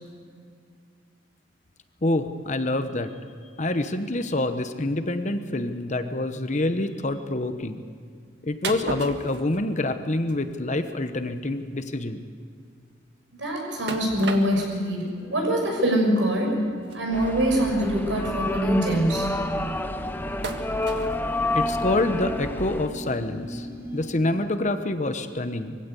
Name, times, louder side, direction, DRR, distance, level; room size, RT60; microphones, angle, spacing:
voice 1, 2.0-3.1 3.6-7.8 8.4-12.2 21.5-23.7 23.9-25.8, left 2 dB, 40° left, 9 dB, 1.0 m, -26 dB
sound 1, 8.6-10.0 10.3-10.5 10.9-11.0 11.4-11.5 11.7-11.9 13.9-14.9 15.6-15.7 16.8-17.0 17.8-17.9 18.2-18.4 20.4-21.1, right 3 dB, 65° right, 1.7 m, -34 dB
voice 2, 13.4-15.0 15.3-16.5 16.9-19.3, right 1 dB, 85° right, 1 dB, 6.5 m, -23 dB
sound 2, 15.1-24.2, right 1 dB, 15° right, 6.3 m, -39 dB
sound 3, 17.1-22.9, left 2 dB, 10° left, 0.7 m, -29 dB
23.5 x 16.0 x 8.2 m, 2.2 s
head